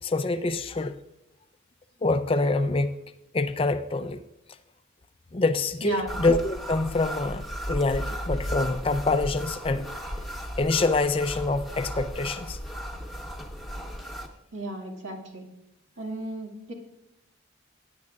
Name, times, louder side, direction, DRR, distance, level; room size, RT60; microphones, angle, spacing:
voice 1, 0.0-0.9 2.0-2.9 3.3-4.2 5.3-9.8 10.6-12.6, left 3 dB, 30° left, 10 dB, 0.5 m, -25 dB
voice 2, 5.8-6.2 14.5-15.4 16.0-16.7, right 1 dB, 75° right, 1 dB, 2.0 m, -34 dB
sound 1, 6.1-14.3, equal, ahead, 1.0 m, -35 dB
17.0 x 9.7 x 2.4 m, 0.88 s
head